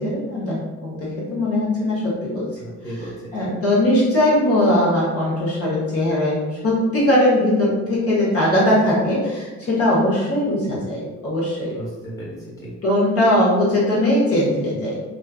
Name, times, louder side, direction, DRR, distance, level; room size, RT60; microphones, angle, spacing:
voice 1, 0.0-2.5 3.3-11.8 12.8-15.0, left 1 dB, 50° left, -6 dB, 0.9 m, -20 dB
voice 2, 2.6-3.5 11.7-12.7, right 1 dB, 10° left, -7 dB, 1.0 m, -35 dB
2.5 x 2.3 x 2.3 m, 1.2 s
cardioid pair, 90°, 30 cm